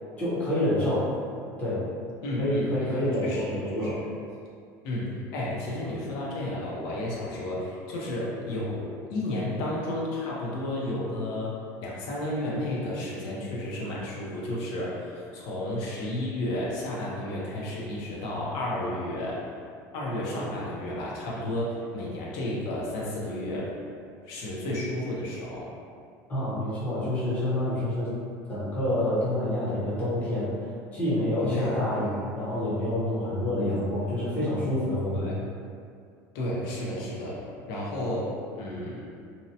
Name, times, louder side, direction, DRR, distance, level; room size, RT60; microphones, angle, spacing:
voice 1, 0.2-1.1 1.6-1.9 2.4-4.0 26.3-28.1 28.5-30.5 30.9-35.3, left 1 dB, 20° left, -9 dB, 0.7 m, -27 dB
voice 2, 2.2-3.5 3.8-4.1 4.8-19.5 19.9-23.7 24.2-25.7 31.4-31.7 35.1-35.4 36.3-37.4 37.7-39.1, left 1 dB, 55° left, -5 dB, 0.6 m, -32 dB
2.7 x 2.1 x 2.7 m, 2.3 s
cardioid pair, 175°, 8 cm